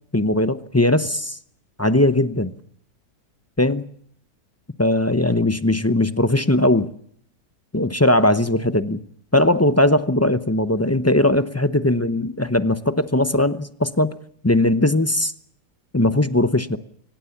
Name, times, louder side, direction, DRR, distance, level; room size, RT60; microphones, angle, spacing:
voice 1, 0.1-1.4 1.8-2.5 3.6-3.8 4.8-6.9 7.7-9.0 9.3-14.2 14.4-15.3 15.9-16.8, left 1 dB, 20° left, 12 dB, 0.4 m, -19 dB
24.5 x 19.5 x 7.2 m, 0.63 s
omnidirectional pair, 1.8 m